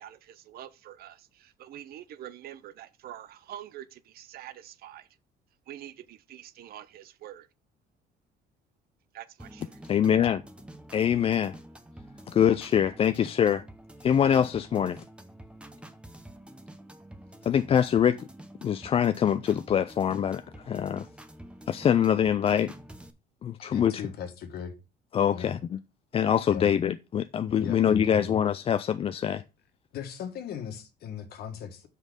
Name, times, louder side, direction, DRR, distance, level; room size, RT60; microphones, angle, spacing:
voice 1, 0.0-5.1 5.7-7.5 9.1-9.7, right 12 dB, 65° right, 0.6 m, -45 dB
sound 1, 9.4-23.1, right 1 dB, 5° right, 0.8 m, -48 dB
voice 2, 9.9-10.4 10.9-11.6 12.3-13.7 14.0-15.0 17.4-18.3 18.6-21.1 21.7-22.7 23.4-24.0 25.1-25.8 26.1-29.4, left 9 dB, 35° left, 0.3 m, -24 dB
voice 3, 23.6-24.7 25.3-25.5 26.5-26.7 27.6-28.3 29.9-31.9, left 7 dB, 70° left, 1.5 m, -38 dB
6.2 x 5.4 x 5.1 m
cardioid pair, 110°, 17 cm